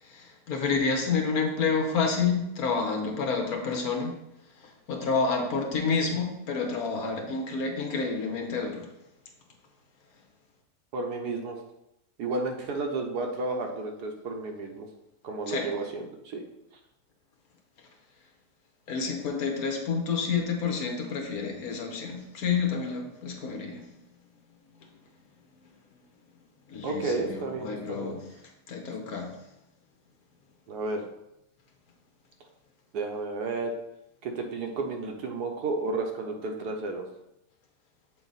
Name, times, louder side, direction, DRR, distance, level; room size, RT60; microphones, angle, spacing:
voice 1, 0.0-4.1 4.6-8.9 15.5-15.7 18.9-23.9 26.7-28.2 28.7-29.4, left 5 dB, 60° left, 2 dB, 1.5 m, -29 dB
voice 2, 10.9-11.6 12.2-14.9 15.2-16.4 26.8-28.2 30.7-31.1 32.9-33.7 34.2-37.0, right 3 dB, 75° right, 3 dB, 1.4 m, -32 dB
7.2 x 4.0 x 4.0 m, 0.86 s
omnidirectional pair, 1.8 m